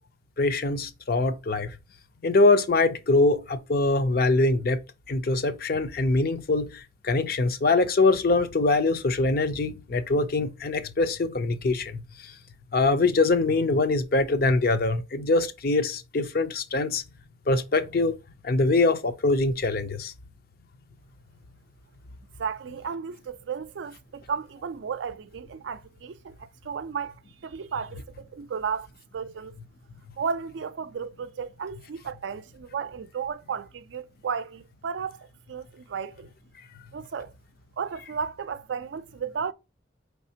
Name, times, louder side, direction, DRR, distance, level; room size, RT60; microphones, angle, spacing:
voice 1, 0.4-1.7 2.2-4.8 5.1-12.0 12.7-17.0 17.5-18.2 18.4-20.1, left 3 dB, 50° left, 0.5 m, -23 dB
voice 2, 22.4-27.1 27.4-28.9 29.1-29.5 30.2-36.3 36.9-37.3 37.8-39.5, right 6 dB, 75° right, 0.4 m, -34 dB
4.9 x 3.3 x 2.7 m
head